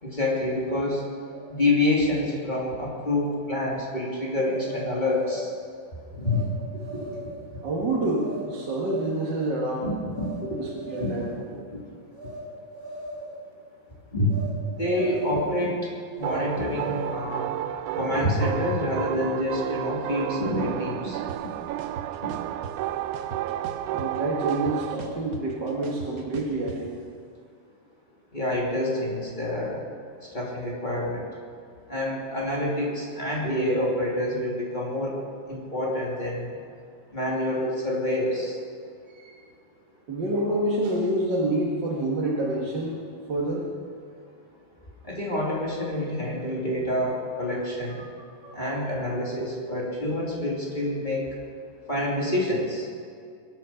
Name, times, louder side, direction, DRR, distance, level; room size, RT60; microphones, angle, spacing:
voice 1, 0.0-1.0 1.6-5.5 6.1-7.2 9.8-10.3 11.0-11.2 11.7-11.8 14.1-14.4 14.7-15.8 16.2-17.5 18.0-21.2 28.3-29.8 30.3-31.2 31.9-35.2 35.5-36.6 37.1-38.6 45.0-48.1 48.5-51.3 51.9-52.9, left 1 dB, 15° left, -4 dB, 2.5 m, -27 dB
sound 1, 4.5-5.6 6.2-6.5 6.8-7.4 8.2-8.4 8.8-9.3 10.1-10.4 10.7-11.4 12.1-12.4 12.7-13.4 14.3-14.5 14.8-15.6 16.2-17.2, right 2 dB, 35° left, 3.0 m, -39 dB
voice 2, 7.6-9.9 10.6-11.6 23.9-27.0 39.1-39.3 40.1-43.7 48.4-48.6, right 1 dB, 40° right, -4 dB, 1.7 m, -28 dB
sound 2, 16.2-25.0, right 12 dB, 80° right, 1.8 m, -31 dB
sound 3, 21.3-21.4 21.8-22.7 23.1-24.2 24.5-26.8, right 5 dB, 60° right, 1.4 m, -39 dB
22.5 x 9.5 x 5.8 m, 2.3 s
omnidirectional pair, 3.9 m